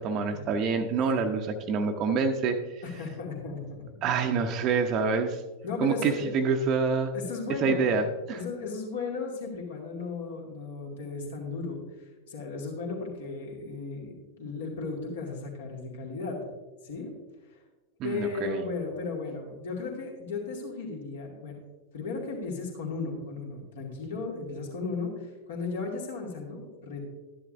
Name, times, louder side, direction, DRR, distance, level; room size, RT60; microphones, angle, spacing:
voice 1, 0.0-2.8 4.0-5.4 5.8-7.1 7.6-8.4 18.0-18.6, right 5 dB, 35° right, 5 dB, 0.8 m, -27 dB
voice 2, 2.8-4.0 5.6-6.3 7.1-8.1 8.3-11.8 12.3-14.1 14.4-16.4 16.8-17.1 17.5-17.6 18.0-21.5 21.9-27.0, left 4 dB, 60° left, -1 dB, 2.5 m, -35 dB
13.0 x 10.5 x 2.6 m, 1.1 s
figure-of-eight pair, 90°, 0 cm